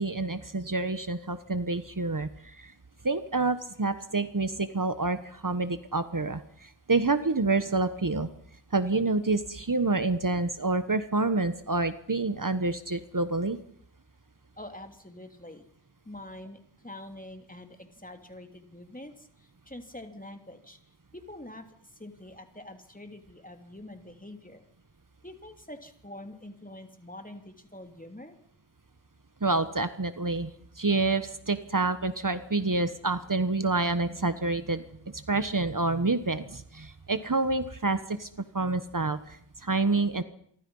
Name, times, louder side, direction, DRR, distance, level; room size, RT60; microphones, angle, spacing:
voice 1, 0.0-2.7 3.0-8.3 8.7-13.6 29.4-34.8 35.1-38.3 38.5-40.2, right 3 dB, 50° right, 11 dB, 1.3 m, -28 dB
voice 2, 14.6-15.6 16.0-20.8 21.1-24.6 25.2-28.3, left 1 dB, 20° left, 6 dB, 3.1 m, -45 dB
27.5 x 24.0 x 5.6 m, 0.65 s
wide cardioid pair, 45°, 42 cm